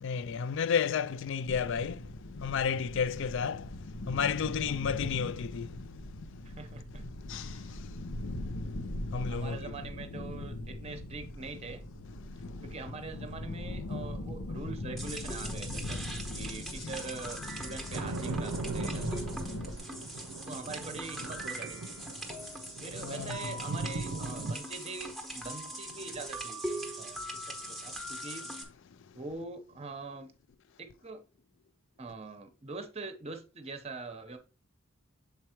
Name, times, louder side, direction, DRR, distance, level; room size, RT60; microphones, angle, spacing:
voice 1, 0.0-6.1 7.2-9.7 12.2-12.5 16.8-16.9 19.6-20.3 22.2-22.7 23.0-23.6, left 6 dB, 55° left, 0.4 m, -34 dB
sound 1, 1.5-19.8, left 1 dB, 85° left, 0.7 m, -40 dB
voice 2, 6.4-7.0 7.3-7.7 9.3-11.8 12.6-16.1 16.4-19.4 20.4-22.0 22.8-26.7 27.0-28.5 29.1-30.3 30.8-31.2 32.0-34.4, right 3 dB, 30° right, 0.8 m, -43 dB
sound 2, 15.0-28.6, right 1 dB, ahead, 0.9 m, -41 dB
sound 3, 17.9-24.6, right 3 dB, 80° right, 0.5 m, -39 dB
7.1 x 4.6 x 2.9 m
head